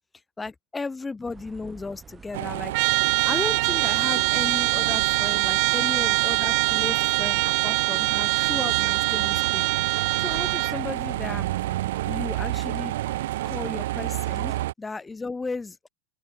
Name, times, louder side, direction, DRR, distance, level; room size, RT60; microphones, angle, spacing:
voice 1, 0.4-2.7 3.3-9.7 10.2-11.5 12.1-12.9 13.4-15.8, left 3 dB, 10° left, 1.1 m, -34 dB
sound 1, 1.2-7.9, right 6 dB, 20° right, 0.9 m, -49 dB
sound 2, 2.3-14.7, right 15 dB, 75° right, 0.9 m, -30 dB
Trumpet, 2.7-10.8, right 33 dB, 55° right, 0.4 m, -24 dB
open air
supercardioid pair, 140°, 0 cm